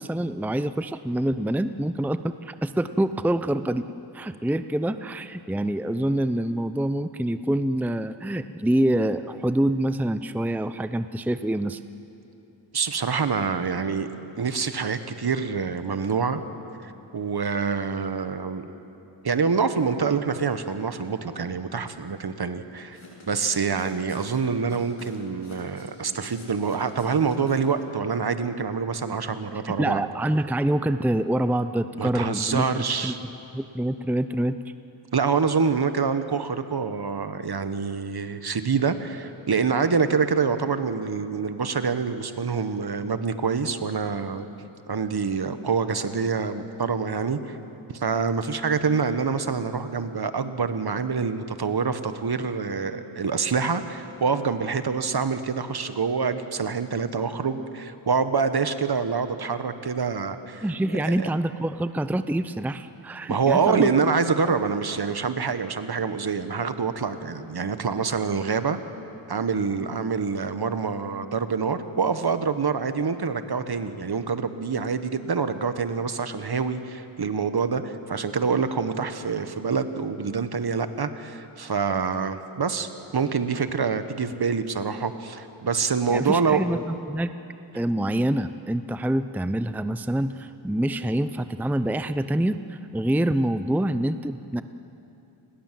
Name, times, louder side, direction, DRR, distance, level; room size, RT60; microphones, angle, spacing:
voice 1, 0.0-3.9 4.1-11.8 29.8-33.1 33.5-34.6 60.6-63.9 86.1-87.3 87.7-94.6, right 1 dB, 5° right, 11 dB, 0.6 m, -26 dB
voice 2, 12.7-14.1 14.4-16.4 16.8-18.7 19.2-23.0 23.3-30.0 32.0-33.2 35.1-44.5 44.9-47.6 47.9-60.6 61.2-61.3 63.3-68.8 69.3-86.6, right 5 dB, 50° right, 10 dB, 1.5 m, -26 dB
sound 1, 22.9-27.8, left 2 dB, 85° left, 7.5 m, -47 dB
29.0 x 21.0 x 7.7 m, 2.9 s
cardioid pair, 75°, 47 cm